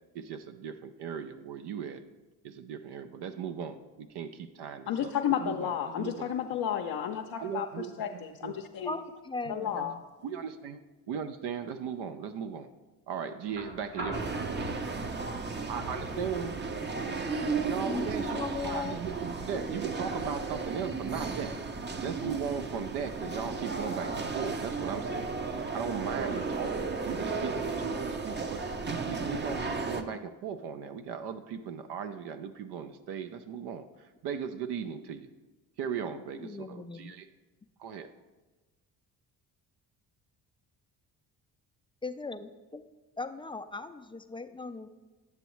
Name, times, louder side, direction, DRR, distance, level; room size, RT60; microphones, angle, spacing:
voice 1, 0.1-2.0 2.4-5.1 5.4-6.3 7.4-8.5 9.7-9.8 10.2-12.7 13.1-14.4 15.7-16.6 17.6-18.4 18.6-21.6 22.0-35.3 35.8-37.3 37.8-38.1, right 7 dB, 65° right, 9 dB, 0.6 m, -38 dB
voice 2, 4.9-9.0 9.5-10.0, left 9 dB, 60° left, 2 dB, 0.6 m, -32 dB
voice 3, 8.8-10.0 17.9-19.0 36.4-37.1 42.0-42.8 43.2-44.9, left 3 dB, 15° left, 9 dB, 0.4 m, -38 dB
sound 1, 13.5-21.5 22.9-23.0, equal, 85° right, 2.0 m, -45 dB
sound 2, 14.1-30.0, right 4 dB, 25° right, 0.6 m, -34 dB
9.5 x 6.9 x 3.1 m, 1.2 s
supercardioid pair, 65°, 42 cm